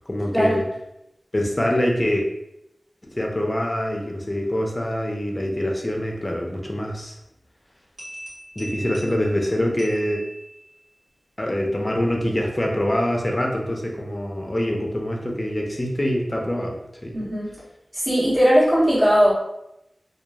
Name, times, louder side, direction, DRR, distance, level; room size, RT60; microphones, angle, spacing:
voice 1, 0.1-0.6 1.3-2.2 3.0-7.1 8.6-10.2 11.4-17.2, equal, 25° left, 0 dB, 0.5 m, -25 dB
sound 1, 8.0-10.9, equal, 65° right, 1.1 m, -39 dB
voice 2, 17.1-17.5 17.9-19.3, equal, 35° right, -9 dB, 1.4 m, -18 dB
2.9 x 2.3 x 2.3 m, 0.83 s
wide cardioid pair, 70°, 0 cm